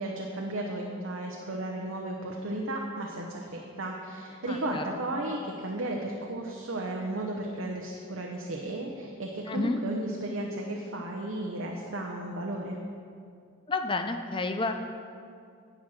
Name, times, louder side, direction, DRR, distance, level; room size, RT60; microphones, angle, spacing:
voice 1, 0.0-12.8, right 1 dB, 80° right, 0 dB, 0.8 m, -34 dB
voice 2, 4.5-5.0 9.5-9.8 13.7-14.8, left 3 dB, 25° left, 6 dB, 0.4 m, -30 dB
11.0 x 7.7 x 4.3 m, 2.3 s
head